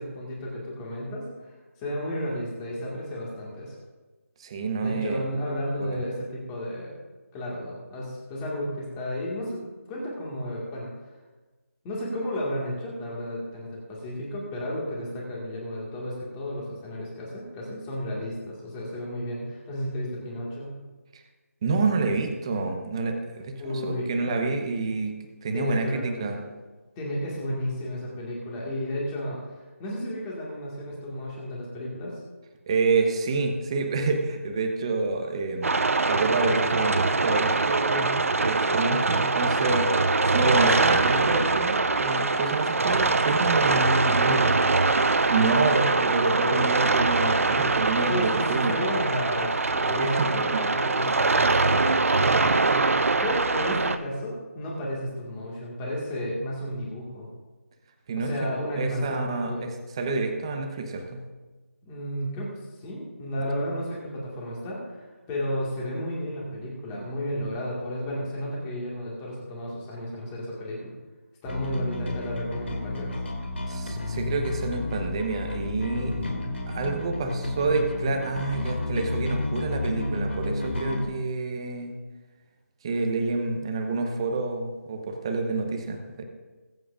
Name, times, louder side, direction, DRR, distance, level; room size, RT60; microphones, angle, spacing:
voice 1, 0.0-3.8 4.8-6.9 7.3-10.9 11.8-20.8 23.6-24.1 25.5-26.4 27.0-32.1 48.1-57.3 58.2-59.8 61.8-62.5 62.8-70.9 71.4-73.1, equal, 10° left, -4 dB, 1.8 m, -33 dB
voice 2, 4.4-5.3 5.8-6.0 21.1-21.2 21.6-25.1 25.4-26.4 32.7-39.9 40.2-44.6 45.1-48.8 50.0-50.4 58.1-61.2 73.7-76.2 76.7-81.9 82.8-86.2, right 3 dB, 20° right, 4 dB, 0.9 m, -28 dB
sound 1, 35.6-54.0, right 3 dB, 65° right, 0.7 m, -23 dB
Bass guitar, 71.5-81.1, left 2 dB, 50° left, 2.5 m, -31 dB
22.0 x 7.8 x 2.5 m, 1.2 s
figure-of-eight pair, 170°, 8 cm